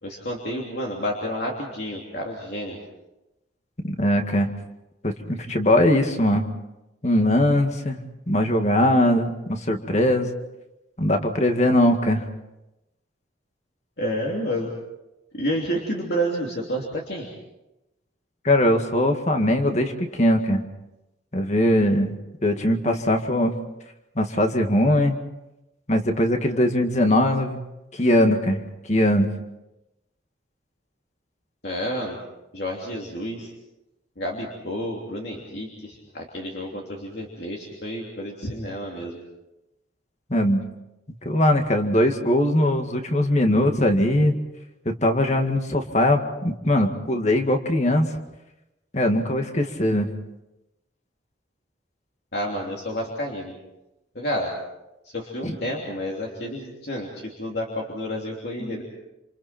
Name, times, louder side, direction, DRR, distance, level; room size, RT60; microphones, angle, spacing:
voice 1, 0.0-2.8 14.0-14.7 15.3-17.3 31.6-32.2 32.5-33.5 34.2-39.2 52.3-53.5 54.1-54.5 55.0-58.8, equal, 55° left, -2 dB, 3.1 m, -30 dB
voice 2, 3.8-4.5 5.0-6.5 7.0-10.3 11.0-12.2 18.4-20.6 21.3-22.1 22.4-23.5 24.2-25.2 25.9-27.6 27.9-28.6 28.9-29.3 40.3-40.6 41.2-44.3 44.9-48.1 48.9-50.1 55.4-55.6 58.6-58.8, left 1 dB, 35° left, 5 dB, 2.0 m, -21 dB
28.0 x 28.0 x 4.5 m, 0.95 s
head